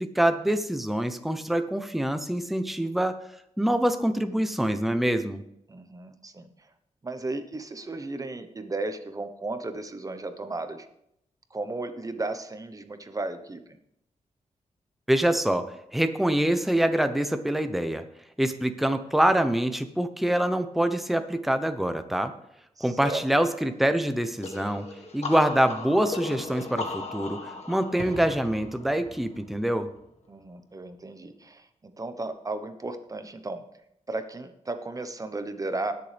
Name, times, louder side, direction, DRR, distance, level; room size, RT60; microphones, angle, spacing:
voice 1, 0.0-3.2 3.6-5.4 15.1-18.0 18.4-22.3 22.8-24.9 25.1-29.9, right 1 dB, ahead, 9 dB, 0.7 m, -25 dB
voice 2, 5.7-6.5 7.0-10.9 11.5-13.6 22.8-23.2 30.3-33.6 34.1-35.9, right 2 dB, 30° right, 8 dB, 1.0 m, -34 dB
sound 1, 24.4-30.0, left 3 dB, 60° left, 1.7 m, -37 dB
19.0 x 6.9 x 3.4 m, 0.78 s
wide cardioid pair, 115°, 12 cm